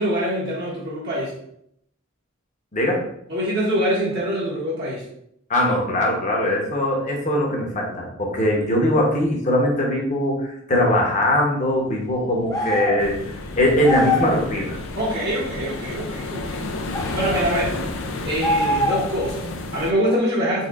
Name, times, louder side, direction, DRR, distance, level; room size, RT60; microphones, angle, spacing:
voice 1, 0.0-1.3 3.3-5.0 14.9-16.7 17.1-17.7 18.2-20.7, equal, 50° right, -7 dB, 1.1 m, -24 dB
voice 2, 2.7-3.0 5.5-13.2 13.6-14.8, left 1 dB, 35° left, -1 dB, 0.9 m, -21 dB
sound 1, 12.5-13.0 13.8-14.4 16.9-17.4 18.4-19.2, left 2 dB, 15° left, 0.6 m, -23 dB
sound 2, 13.0-19.9, left 2 dB, 70° left, 0.5 m, -31 dB
4.2 x 3.7 x 2.4 m, 0.73 s
head